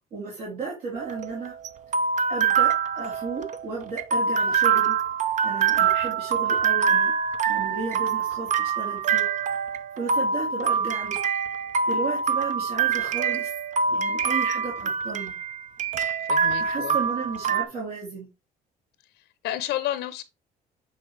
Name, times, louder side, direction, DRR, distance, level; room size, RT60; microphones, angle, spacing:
voice 1, 0.1-1.5 2.3-5.0 5.4-7.1 7.5-9.5 10.0-11.2 11.9-13.5 13.9-15.3 16.6-18.3, right 4 dB, 60° right, 2.9 m, -34 dB
sound 1, 1.0-17.6, right 6 dB, 45° right, 0.7 m, -25 dB
voice 2, 16.3-17.0 19.2-20.2, left 13 dB, 85° left, 0.8 m, -31 dB
8.4 x 4.0 x 3.3 m
cardioid pair, 110°, 17 cm